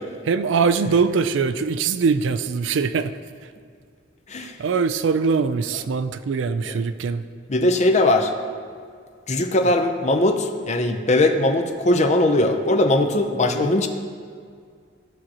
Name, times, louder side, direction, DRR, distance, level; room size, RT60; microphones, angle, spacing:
voice 1, 0.3-3.1 4.6-7.2 13.5-13.7, right 5 dB, 70° right, 12 dB, 0.4 m, -22 dB
voice 2, 7.5-8.3 9.3-13.9, left 1 dB, 35° left, 6 dB, 0.6 m, -20 dB
15.0 x 6.2 x 2.9 m, 2.1 s
head